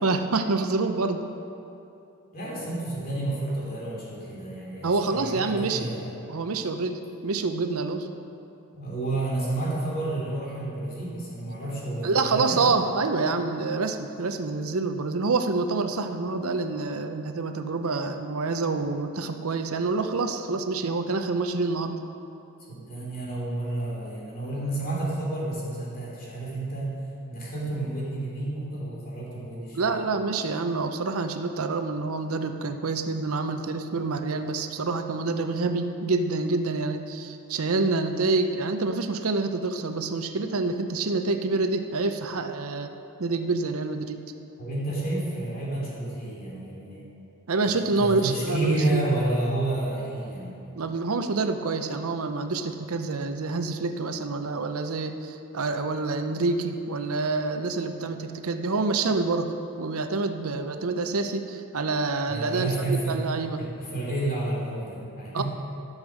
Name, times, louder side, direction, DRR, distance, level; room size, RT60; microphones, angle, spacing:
voice 1, 0.0-1.2 4.8-5.9 6.3-8.1 12.0-22.0 29.7-42.9 43.2-44.2 47.5-49.0 50.7-59.5 59.8-63.6 65.3-65.4, right 3 dB, 75° right, 7 dB, 0.7 m, -27 dB
voice 2, 2.3-6.1 8.7-12.6 22.7-27.0 27.3-30.0 44.6-47.1 47.7-50.6 62.3-63.2 63.6-65.4, right 2 dB, 40° left, -5 dB, 2.9 m, -30 dB
13.0 x 6.5 x 6.4 m, 2.8 s
head